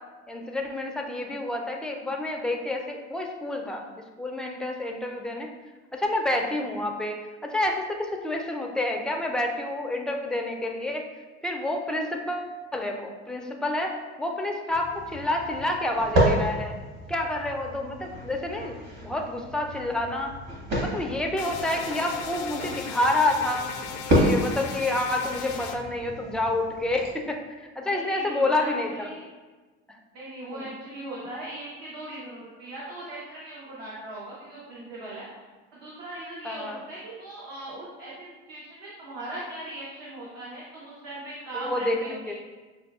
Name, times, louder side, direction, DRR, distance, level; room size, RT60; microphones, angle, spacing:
voice 1, 0.3-3.9 4.2-5.5 5.9-7.2 7.4-11.0 11.4-16.8 17.1-20.3 20.8-23.7 24.1-29.1 30.5-30.7 36.4-36.8 41.5-42.3, left 1 dB, ahead, 1 dB, 0.4 m, -29 dB
sound 1, 14.7-27.1, equal, 55° right, 1.4 m, -30 dB
sound 2, 21.4-25.8, left 6 dB, 55° left, 0.5 m, -37 dB
voice 2, 27.8-29.3 30.1-35.3 35.7-42.3, right 1 dB, 70° right, -6 dB, 1.0 m, -39 dB
6.0 x 2.3 x 2.3 m, 1.3 s
hypercardioid pair, 80°, 34 cm